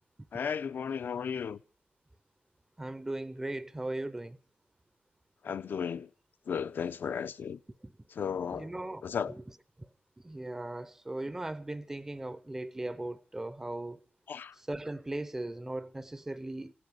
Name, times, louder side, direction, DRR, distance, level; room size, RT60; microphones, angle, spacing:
voice 1, 0.3-1.6 5.4-6.1 6.5-7.6 8.1-8.7 9.0-9.4 14.3-14.6, left 7 dB, 65° left, 0.7 m, -34 dB
voice 2, 2.8-4.4 7.8-7.9 8.6-9.0 9.3-9.4 9.8-9.9 10.2-14.0 14.6-16.7, right 1 dB, 10° right, 0.7 m, -38 dB
16.5 x 10.5 x 8.2 m
wide cardioid pair, 145°, 4 cm